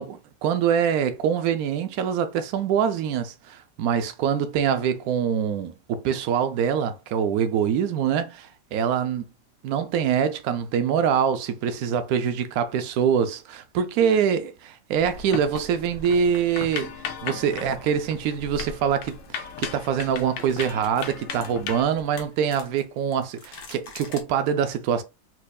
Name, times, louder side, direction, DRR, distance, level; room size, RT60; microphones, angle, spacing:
voice 1, 0.0-9.2 9.6-16.9 17.2-25.0, right 8 dB, 75° right, 0.8 m, -24 dB
sound 1, 15.0-21.8, left 6 dB, 85° left, 1.4 m, -36 dB
sound 2, 17.8-17.9 19.3-19.5 19.8-19.9 20.4-24.2, left 4 dB, 60° left, 1.3 m, -45 dB
4.4 x 2.6 x 2.3 m
omnidirectional pair, 1.9 m